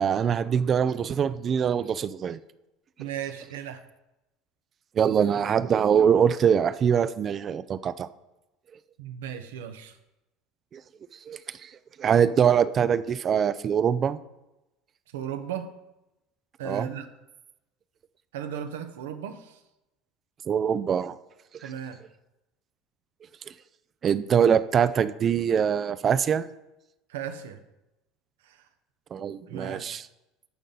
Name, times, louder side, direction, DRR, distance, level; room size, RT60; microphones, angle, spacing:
voice 1, 0.0-2.4 5.0-8.1 10.7-10.8 11.3-11.7 12.0-14.2 16.7-16.9 20.5-21.2 21.6-21.7 24.0-26.5 29.1-30.0, right 8 dB, 40° right, 14 dB, 0.3 m, -23 dB
voice 2, 3.0-3.8 9.0-10.0 15.1-15.7 16.6-17.1 18.3-19.6 21.6-22.0 27.1-27.6 28.4-28.7 29.1-29.9, right 8 dB, 85° right, 8 dB, 0.7 m, -36 dB
10.0 x 4.0 x 3.9 m, 0.96 s
hypercardioid pair, 90°, 0 cm